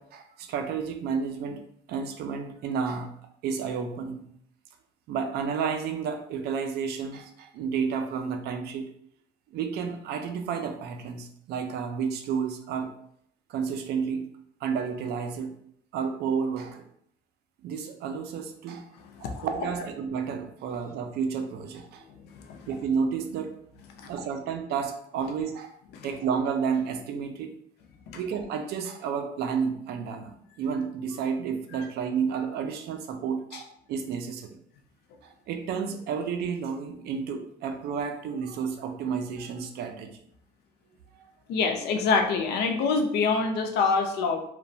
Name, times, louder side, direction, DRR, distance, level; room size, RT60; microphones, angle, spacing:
voice 1, 0.0-1.6 1.9-3.1 3.4-4.3 5.1-8.8 9.5-12.9 13.5-14.3 14.6-15.5 15.9-16.8 17.6-18.9 19.2-22.0 22.7-23.5 24.0-25.8 26.0-27.5 28.1-34.5 35.2-40.2, right 6 dB, 75° right, 6 dB, 0.4 m, -31 dB
voice 2, 19.0-19.5 22.3-22.6 24.0-24.1 25.9-26.1 28.1-28.2 41.5-44.4, left 4 dB, 80° left, 4 dB, 0.5 m, -26 dB
2.8 x 2.1 x 2.6 m, 0.69 s
cardioid pair, 110°, 17 cm